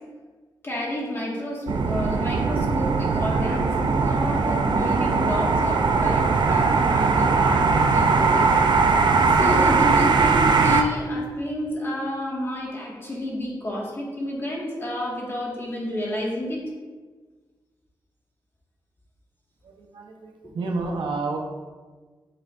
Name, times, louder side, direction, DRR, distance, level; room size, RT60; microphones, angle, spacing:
voice 1, 0.6-8.5 9.3-16.6 20.4-20.5, left 1 dB, 30° left, -4 dB, 1.7 m, -30 dB
sound 1, 1.7-10.8, right 4 dB, 70° right, 0.4 m, -20 dB
voice 2, 19.6-21.4, right 3 dB, 90° right, 1 dB, 0.9 m, -30 dB
8.8 x 4.8 x 2.5 m, 1.4 s
wide cardioid pair, 105°, 8 cm